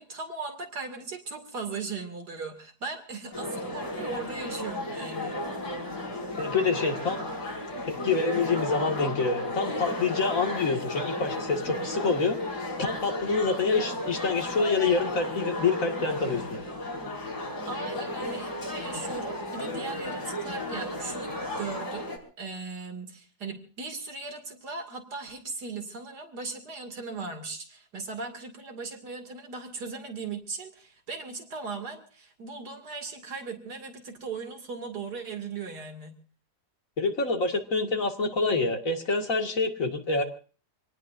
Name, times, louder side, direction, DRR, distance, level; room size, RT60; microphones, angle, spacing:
voice 1, 0.0-5.4 17.7-22.1 22.4-36.2, right 4 dB, 85° right, 5 dB, 3.1 m, -38 dB
sound 1, 3.3-22.2, left 1 dB, 85° left, 4.6 m, -34 dB
voice 2, 6.4-7.2 7.9-16.6 37.0-40.2, left 4 dB, 55° left, 3 dB, 2.5 m, -27 dB
26.0 x 18.5 x 2.6 m, 0.38 s
omnidirectional pair, 1.7 m